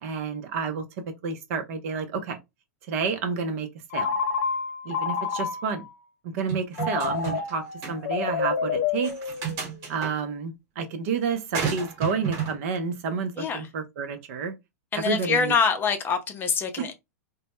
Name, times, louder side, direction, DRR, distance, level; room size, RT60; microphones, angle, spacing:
voice 1, 0.0-0.8 1.2-2.4 2.9-3.7 3.9-4.1 4.8-5.8 6.3-9.1 9.9-14.5 15.0-15.5 16.8-16.9, right 5 dB, 60° right, 0.6 m, -30 dB
Telephone, 3.9-5.9 6.8-9.8, left 6 dB, 65° left, 0.7 m, -29 dB
sound 1, 6.5-7.5 7.8-8.0 9.0-10.1 11.5-12.6, right 7 dB, 40° right, 1.2 m, -31 dB
voice 2, 13.4-13.7 14.9-16.9, left 6 dB, 25° left, 0.6 m, -25 dB
2.1 x 2.0 x 2.9 m
hypercardioid pair, 110°, 8 cm